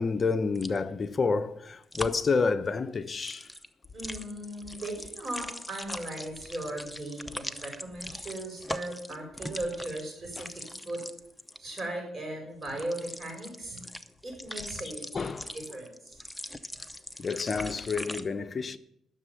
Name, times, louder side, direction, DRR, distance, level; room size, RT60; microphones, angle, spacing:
voice 1, 0.0-3.5 10.4-10.5 15.1-15.5 17.2-18.8, left 4 dB, 35° left, 0.7 m, -29 dB
sound 1, 0.5-0.8 1.9-2.3 3.1-11.9 12.6-18.2, left 1 dB, 5° left, 0.8 m, -41 dB
voice 2, 3.9-11.0 11.6-14.0 14.2-16.2, right 1 dB, 35° right, 5.9 m, -38 dB
13.5 x 6.9 x 7.1 m
cardioid pair, 90°, 0 cm